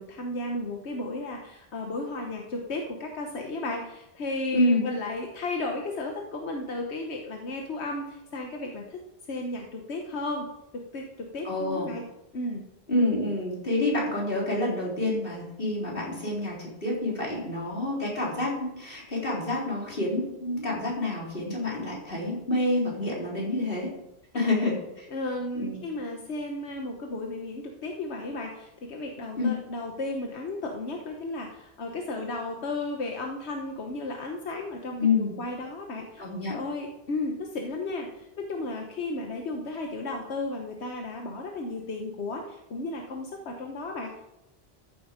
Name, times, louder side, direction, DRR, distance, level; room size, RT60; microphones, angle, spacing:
voice 1, 0.0-9.0 9.3-10.5 10.7-12.0 12.3-12.6 24.3-24.7 25.1-36.2 36.5-44.2, left 2 dB, 90° left, 2 dB, 1.4 m, -34 dB
voice 2, 4.5-4.8 11.4-11.9 12.9-23.9 24.3-25.1 25.6-25.8 29.4-29.5 35.0-35.4 36.2-36.6, left 2 dB, 60° left, -4 dB, 3.9 m, -28 dB
14.0 x 7.9 x 5.1 m, 0.90 s
omnidirectional pair, 1.1 m